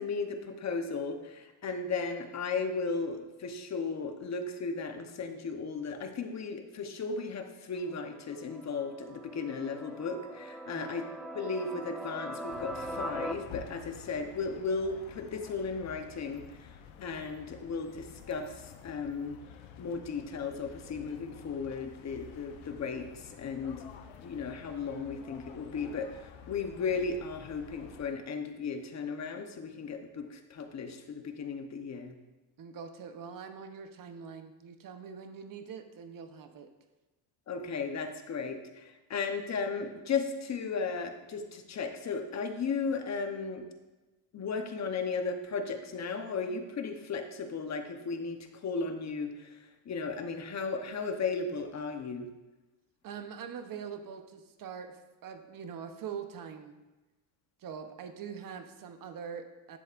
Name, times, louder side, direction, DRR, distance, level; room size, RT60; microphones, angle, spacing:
voice 1, 0.0-11.1 11.3-19.4 19.8-23.9 24.2-32.1 37.5-43.6 44.3-52.3, left 4 dB, 35° left, 6 dB, 1.0 m, -35 dB
sound 1, 7.8-13.3, right 1 dB, ahead, 0.4 m, -41 dB
sound 2, 12.5-28.1, left 7 dB, 70° left, 0.9 m, -50 dB
voice 2, 32.6-36.7 53.0-56.7 57.6-59.8, right 7 dB, 45° right, 8 dB, 0.9 m, -43 dB
10.0 x 7.6 x 2.5 m, 1.1 s
supercardioid pair, 100°, 48 cm